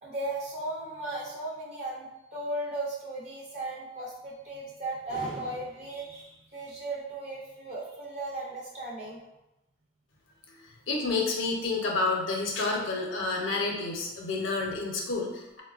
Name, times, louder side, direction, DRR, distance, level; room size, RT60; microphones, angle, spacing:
voice 1, 0.0-2.1 2.3-9.2, right 2 dB, 35° right, -4 dB, 0.4 m, -36 dB
voice 2, 10.5-15.6, left 3 dB, 75° left, 0 dB, 0.6 m, -30 dB
3.8 x 2.1 x 2.3 m, 0.94 s
head